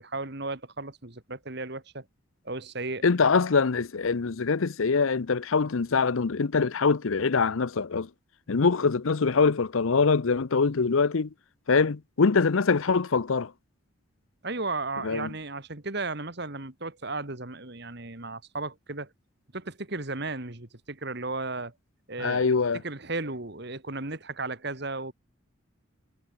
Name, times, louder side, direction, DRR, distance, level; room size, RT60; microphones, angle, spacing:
voice 1, 0.0-2.1 2.4-3.1 14.4-19.1 19.5-21.7 22.1-25.1, right 3 dB, 50° right, 2.1 m, -35 dB
voice 2, 3.0-8.1 8.5-11.3 11.7-13.5 15.0-15.3 22.2-22.8, left 4 dB, 75° left, 0.7 m, -24 dB
head